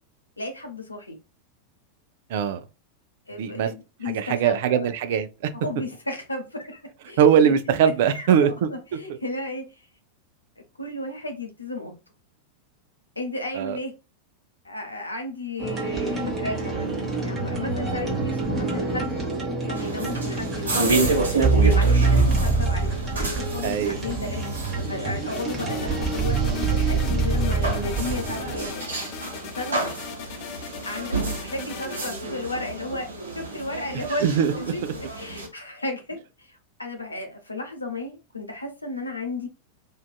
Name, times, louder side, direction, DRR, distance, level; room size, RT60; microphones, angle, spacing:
voice 1, 0.4-1.2 3.3-4.9 5.5-7.5 8.1-9.9 10.8-11.9 13.2-13.9 14.6-19.2 19.7-21.2 21.7-24.4 24.8-28.9 29.5-29.9 30.9-34.3 34.7-34.8 35.1-39.5, left 2 dB, 80° left, 0.7 m, -34 dB
voice 2, 2.3-2.6 3.3-3.7 4.1-5.5 7.2-8.5 13.5-13.8 23.6-24.0 33.9-34.5, right 8 dB, 50° right, 0.3 m, -21 dB
sound 1, 15.6-28.7, right 3 dB, 20° right, 0.9 m, -25 dB
sound 2, 19.7-35.5, right 3 dB, 70° right, 1.0 m, -30 dB
sound 3, 25.3-32.1, left 8 dB, 40° left, 0.4 m, -39 dB
2.6 x 2.3 x 2.3 m
figure-of-eight pair, 90°, 0 cm